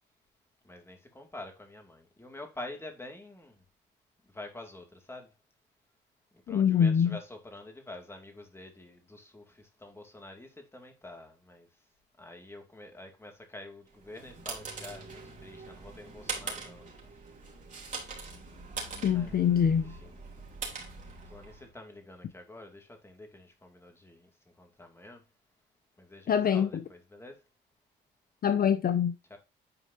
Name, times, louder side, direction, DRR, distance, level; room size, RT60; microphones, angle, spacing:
voice 1, 0.6-3.6 4.3-5.3 6.3-11.7 12.2-16.9 19.1-19.4 19.7-20.2 21.2-24.3 24.6-25.2 26.0-27.4 29.3-29.4, left 2 dB, 10° left, 2.3 m, -47 dB
voice 2, 6.5-7.2 19.0-19.9 26.3-26.8 28.4-29.1, left 8 dB, 50° left, 0.6 m, -24 dB
sound 1, 14.0-21.7, right 4 dB, 40° right, 3.2 m, -42 dB
9.7 x 4.6 x 2.8 m
cardioid pair, 90°, 20 cm